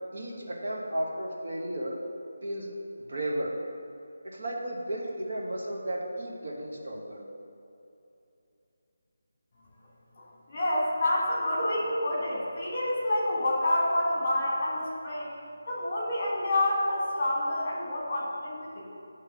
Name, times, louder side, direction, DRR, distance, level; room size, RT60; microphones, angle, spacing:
voice 1, 0.1-2.0 2.4-2.7 3.1-3.5 4.2-7.2, right 1 dB, 55° right, -2 dB, 1.2 m, -34 dB
voice 2, 10.2-15.3 15.7-18.9, left 1 dB, 25° left, -5 dB, 1.7 m, -28 dB
8.9 x 3.2 x 6.1 m, 2.8 s
figure-of-eight pair, 175°, 0 cm